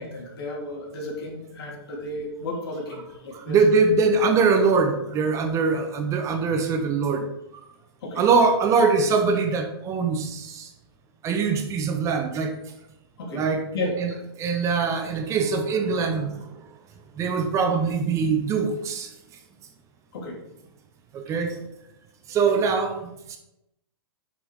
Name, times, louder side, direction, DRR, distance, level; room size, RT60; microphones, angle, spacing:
voice 1, 0.0-3.6 8.0-8.2 13.2-13.4 13.7-14.2 20.1-20.4, left 1 dB, 65° left, -1 dB, 3.1 m, -33 dB
voice 2, 3.5-7.3 8.2-10.7 11.2-12.6 13.3-13.6 14.0-14.1 14.4-16.5 17.2-19.1 21.1-21.6 22.3-23.4, right 4 dB, 20° right, 6 dB, 0.9 m, -22 dB
7.5 x 6.1 x 4.7 m, 0.88 s
hypercardioid pair, 140°, 13 cm